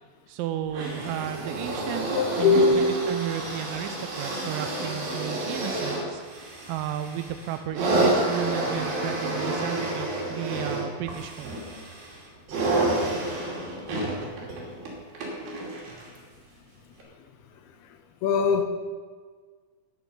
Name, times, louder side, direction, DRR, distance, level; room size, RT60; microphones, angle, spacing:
voice 1, 0.3-2.1 2.4-11.5, right 10 dB, 80° right, 8 dB, 2.1 m, -33 dB
sound 1, 0.7-16.2 17.0-17.1, right 2 dB, 65° right, 4.4 m, -29 dB
voice 2, 2.2-2.9 17.6-17.7 18.2-18.6, left 4 dB, 85° left, 6 dB, 3.1 m, -21 dB
13.5 x 10.5 x 5.4 m, 1.5 s
omnidirectional pair, 4.4 m